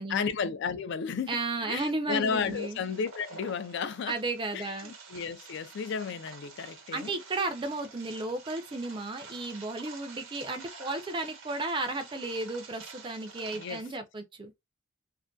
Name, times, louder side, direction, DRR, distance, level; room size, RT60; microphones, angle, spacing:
voice 1, 0.0-4.2 4.5-7.1 13.5-13.8, left 6 dB, 60° left, 0.3 m, -33 dB
voice 2, 1.3-2.8 4.1-4.9 6.9-14.5, right 2 dB, 25° right, 0.4 m, -34 dB
sound 1, 2.3-13.9, right 4 dB, 90° right, 0.9 m, -49 dB
2.5 x 2.1 x 2.2 m
head